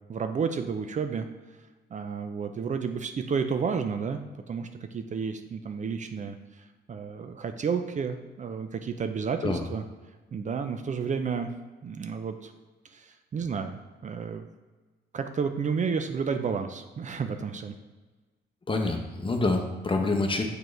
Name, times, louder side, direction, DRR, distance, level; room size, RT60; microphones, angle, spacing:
voice 1, 0.1-1.3 1.9-4.2 4.5-9.8 10.3-11.5 11.8-12.5 12.9-14.5 15.1-17.7, right 6 dB, 40° right, 7 dB, 0.5 m, -31 dB
voice 2, 18.7-20.4, left 3 dB, 25° left, 4 dB, 0.9 m, -26 dB
6.7 x 4.6 x 3.2 m, 1.3 s
cardioid pair, 90°, 20 cm